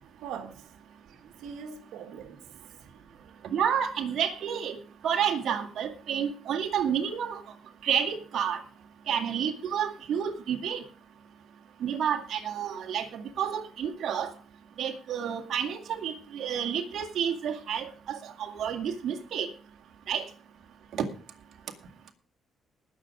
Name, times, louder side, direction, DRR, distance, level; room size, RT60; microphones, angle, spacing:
voice 1, 0.2-0.7 1.4-2.5 2.8-3.2, right 7 dB, 90° right, 1.7 m, -42 dB
voice 2, 3.5-4.8 5.0-7.4 7.8-8.6 9.1-10.8 11.8-14.3 14.8-19.5 20.1-20.2 20.9-21.0, right 8 dB, 65° right, 2.1 m, -30 dB
19.5 x 6.8 x 4.9 m
cardioid pair, 90°, 0 cm